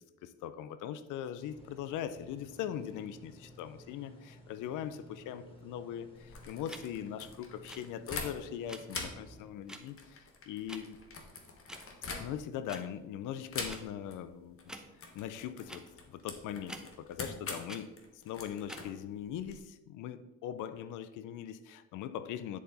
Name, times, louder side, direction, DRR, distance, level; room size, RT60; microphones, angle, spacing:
voice 1, 0.0-11.0 12.2-14.6 15.1-17.9 18.2-22.6, left 10 dB, 85° left, 13 dB, 0.5 m, -41 dB
sound 1, 1.3-9.5, equal, 15° left, 2.2 m, -56 dB
sound 2, 6.1-8.6 8.9-12.7 13.5-14.2 14.4-14.7 15.0-19.6, left 3 dB, 45° left, 1.3 m, -44 dB
sound 3, 6.7-6.8 7.6-7.8 8.7-8.8 9.7-9.8 10.7-10.8 11.7-11.8 12.7-12.8 13.7-13.8 14.6-14.9 15.7-15.8 16.7-16.8 17.7-17.8 18.6-18.8, right 1 dB, ahead, 0.8 m, -46 dB
9.8 x 4.2 x 4.0 m, 0.98 s
cardioid pair, 90°, 30 cm